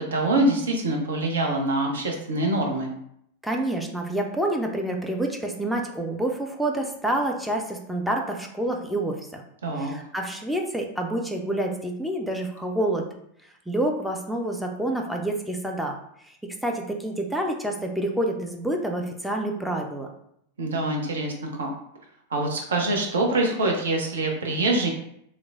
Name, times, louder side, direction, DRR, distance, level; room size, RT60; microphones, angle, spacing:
voice 1, 0.0-2.9 9.6-9.9 20.6-21.7 22.3-24.9, right 2 dB, 65° right, 1 dB, 0.6 m, -25 dB
voice 2, 3.4-9.4 9.8-13.1 13.7-16.0 16.2-16.4 16.6-20.1, right 1 dB, ahead, 1 dB, 0.4 m, -28 dB
3.0 x 2.0 x 2.4 m, 0.73 s
figure-of-eight pair, 90°, 0 cm